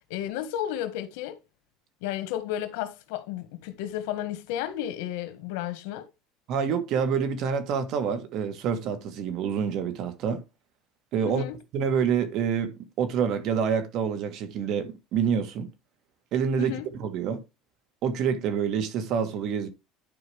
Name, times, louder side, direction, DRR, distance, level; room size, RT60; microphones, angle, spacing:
voice 1, 0.1-1.4 2.0-6.0 11.2-11.6 16.6-16.9, left 12 dB, 90° left, 1.5 m, -33 dB
voice 2, 6.5-10.4 11.1-11.5 11.7-15.7 16.3-17.4 18.0-19.7, right 7 dB, 55° right, 1.6 m, -27 dB
10.5 x 4.9 x 3.5 m
cardioid pair, 150°, 0 cm